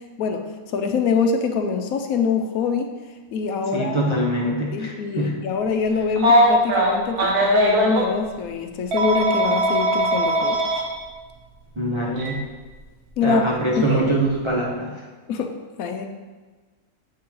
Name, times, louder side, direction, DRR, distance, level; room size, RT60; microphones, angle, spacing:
voice 1, 0.7-2.9 3.3-4.1 4.7-10.6 13.2-13.4 13.8-13.9 15.3-15.5 15.8-16.1, left 5 dB, 75° left, 5 dB, 1.0 m, -24 dB
voice 2, 3.7-5.4 11.8-12.5 13.2-15.0, right 1 dB, 25° right, -4 dB, 0.7 m, -24 dB
Telephone, 6.2-8.0 8.9-10.8 12.2-12.3 13.8-14.0, right 1 dB, 90° right, 1.5 m, -19 dB
7.6 x 4.4 x 3.7 m, 1.3 s
omnidirectional pair, 1.6 m